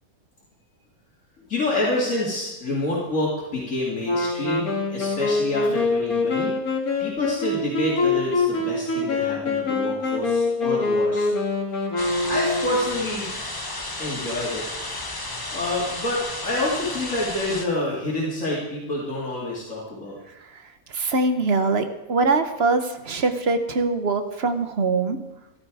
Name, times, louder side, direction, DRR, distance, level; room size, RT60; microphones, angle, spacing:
voice 1, 1.4-6.5 7.0-11.3 12.2-13.3 14.0-14.7 15.5-20.2, left 2 dB, 60° left, -6 dB, 3.2 m, -28 dB
Wind instrument woodwind instrument, 4.0-13.1, left 3 dB, 90° left, 2.3 m, -24 dB
sound 1, 12.0-17.7, left 2 dB, 15° left, 1.0 m, -33 dB
voice 2, 20.9-25.2, right 3 dB, 50° right, 8 dB, 1.2 m, -23 dB
14.0 x 12.5 x 4.8 m, 1.0 s
omnidirectional pair, 1.5 m